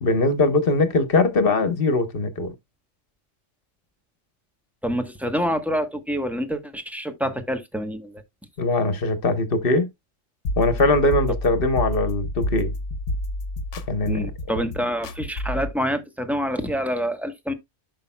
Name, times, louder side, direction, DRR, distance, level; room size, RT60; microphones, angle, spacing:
voice 1, 0.0-2.5 8.6-9.9 10.6-12.8 13.9-14.3 14.6-14.7, left 2 dB, 50° left, 1.2 m, -21 dB
voice 2, 4.8-8.2 14.1-17.5, equal, ahead, 1.0 m, -27 dB
sound 1, 10.4-15.7, left 1 dB, 80° left, 1.2 m, -29 dB
11.5 x 5.6 x 2.2 m
omnidirectional pair, 1.2 m